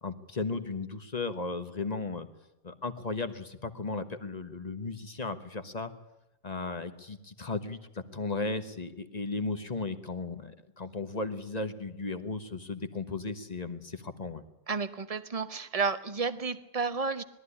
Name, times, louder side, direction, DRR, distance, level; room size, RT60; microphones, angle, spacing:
voice 1, 0.0-2.3 2.6-5.9 6.4-14.4, left 3 dB, 30° left, 9 dB, 1.2 m, -35 dB
voice 2, 14.7-17.2, right 4 dB, 30° right, 12 dB, 0.9 m, -31 dB
21.0 x 13.5 x 9.9 m, 0.95 s
omnidirectional pair, 1.6 m